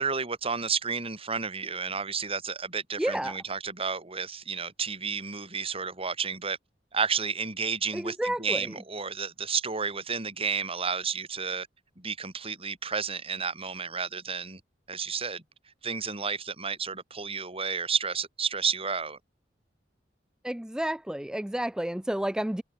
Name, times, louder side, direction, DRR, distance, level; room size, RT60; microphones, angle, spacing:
voice 1, 0.0-6.6 6.9-11.7 12.0-14.6 14.9-15.4 15.8-19.2, right 5 dB, 35° right, 4.4 m, -31 dB
voice 2, 3.0-3.4 7.9-8.8 20.4-22.6, right 1 dB, 5° right, 0.3 m, -30 dB
head